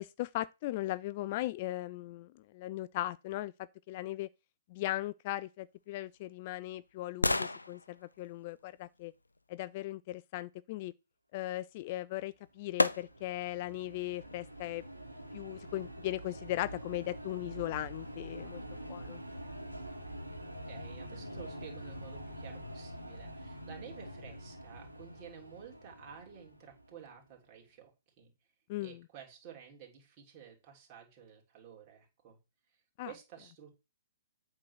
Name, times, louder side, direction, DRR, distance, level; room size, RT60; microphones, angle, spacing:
voice 1, 0.0-3.5 3.9-4.3 4.7-9.1 9.5-10.9 11.3-14.8 15.3-18.6 18.9-19.2 28.7-29.0 33.0-33.1, left 16 dB, 35° left, 0.3 m, -38 dB
sound 1, 5.7-9.8 11.9-12.0 12.8-13.5 14.0-14.1, left 2 dB, 80° left, 0.6 m, -36 dB
sound 2, 12.6-27.1, equal, 90° right, 1.9 m, -46 dB
voice 2, 20.7-28.3 28.8-32.4 33.0-33.8, right 8 dB, 30° right, 3.1 m, -52 dB
8.3 x 3.9 x 6.5 m
figure-of-eight pair, 125°, 0 cm